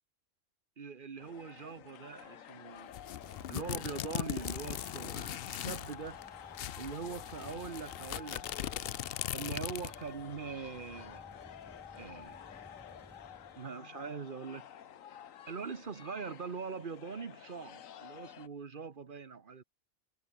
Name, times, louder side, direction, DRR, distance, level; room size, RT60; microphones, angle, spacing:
voice 1, 0.8-2.9 3.5-6.2 6.8-11.2 12.0-12.4 13.6-14.7 15.5-19.6, right 5 dB, 45° right, 1.2 m, -42 dB
sound 1, 1.2-18.5, left 9 dB, 85° left, 1.3 m, -50 dB
sound 2, 2.9-5.9 6.2-6.3 6.5-10.1, left 11 dB, 60° left, 0.7 m, -39 dB
sound 3, 2.9-13.7, equal, 5° right, 4.5 m, -57 dB
omnidirectional pair, 1.3 m